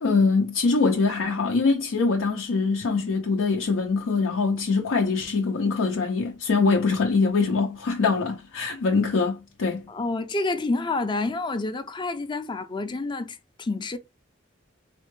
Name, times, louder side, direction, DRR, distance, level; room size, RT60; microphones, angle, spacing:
voice 1, 0.0-9.9, left 4 dB, 75° left, 0.5 m, -23 dB
voice 2, 9.9-14.0, left 2 dB, 25° left, 0.4 m, -28 dB
4.1 x 2.1 x 3.0 m
head